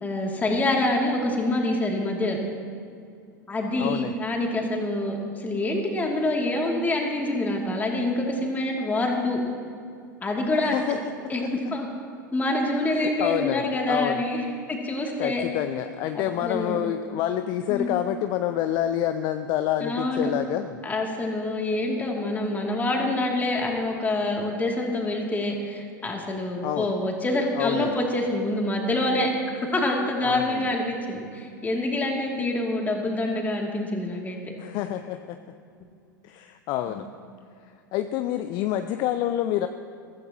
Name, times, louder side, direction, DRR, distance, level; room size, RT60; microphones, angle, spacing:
voice 1, 0.0-2.4 3.5-9.4 10.2-11.0 11.3-11.9 12.3-15.4 16.1-16.9 17.7-17.9 19.8-20.3 20.8-34.4 36.9-37.0, left 1 dB, 15° left, 0 dB, 2.7 m, -26 dB
voice 2, 3.8-4.1 10.6-11.5 12.9-14.2 15.2-20.8 26.6-26.9 27.5-28.0 30.2-30.8 34.6-35.4 36.2-37.1 37.9-39.7, left 12 dB, 40° left, 9 dB, 0.6 m, -28 dB
22.5 x 14.5 x 3.0 m, 2.3 s
figure-of-eight pair, 90°, 11 cm